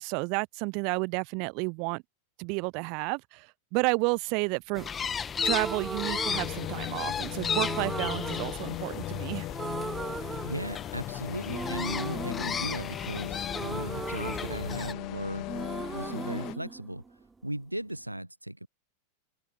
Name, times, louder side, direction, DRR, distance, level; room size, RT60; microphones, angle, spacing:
voice 1, 0.0-2.0 2.4-4.9 5.4-9.5, right 34 dB, 45° right, 0.8 m, -31 dB
sound 1, 4.8-14.9, left 7 dB, 20° left, 2.4 m, -35 dB
sound 2, 5.4-7.0 7.5-9.2 9.5-11.1 11.5-15.2 15.5-17.5, right 4 dB, 10° right, 0.4 m, -38 dB
sound 3, 6.3-16.6, left 21 dB, 40° left, 1.7 m, -38 dB
voice 2, 10.4-15.5 15.9-17.0 17.4-18.7, right 1 dB, 85° right, 0.6 m, -37 dB
figure-of-eight pair, 90°, 0 cm